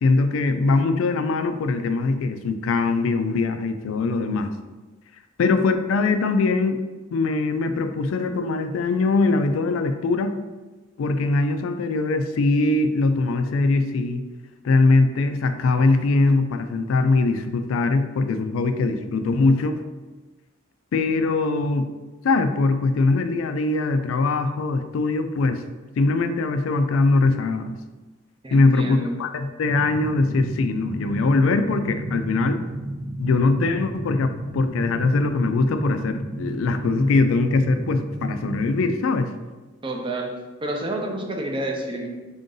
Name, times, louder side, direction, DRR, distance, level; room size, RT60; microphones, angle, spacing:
voice 1, 0.0-4.5 5.4-6.8 7.1-10.4 11.0-14.2 14.6-19.8 20.9-21.9 22.2-25.6 26.0-27.8 28.5-32.6 33.2-39.3, left 3 dB, 85° left, 8 dB, 0.3 m, -21 dB
voice 2, 28.4-29.1 39.8-40.3 40.6-42.1, right 1 dB, 25° right, 1 dB, 0.5 m, -29 dB
sound 1, 29.6-38.8, right 1 dB, 75° right, 0.8 m, -32 dB
3.7 x 2.6 x 3.8 m, 1.2 s
head